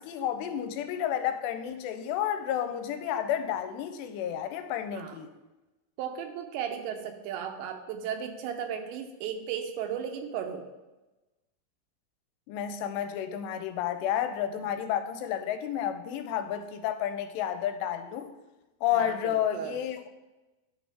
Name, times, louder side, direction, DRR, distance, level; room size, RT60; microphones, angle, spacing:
voice 1, 0.0-5.3 12.5-18.3 18.8-20.1, left 10 dB, 85° left, 9 dB, 2.7 m, -31 dB
voice 2, 6.0-10.7 14.5-14.6 18.9-19.8, right 8 dB, 85° right, 5 dB, 3.1 m, -35 dB
11.5 x 6.0 x 3.5 m, 1.1 s
omnidirectional pair, 5.0 m